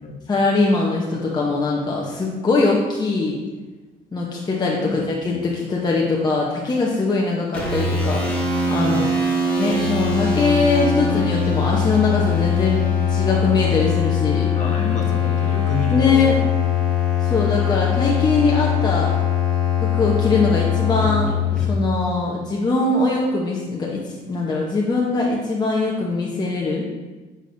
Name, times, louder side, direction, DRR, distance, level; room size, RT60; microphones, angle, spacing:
voice 1, 0.3-3.4 4.1-5.0 5.7-8.2 8.7-9.1 9.6-14.5 15.9-16.3 17.2-19.1 19.8-21.3 21.7-26.8, left 3 dB, 25° left, -3 dB, 0.8 m, -21 dB
voice 2, 4.8-5.7 8.8-9.1 14.5-16.4, left 3 dB, 45° left, 0 dB, 1.3 m, -29 dB
sound 1, 7.5-21.6, left 6 dB, 10° left, 1.9 m, -21 dB
8.6 x 5.1 x 2.6 m, 1.2 s
cardioid pair, 110°, 17 cm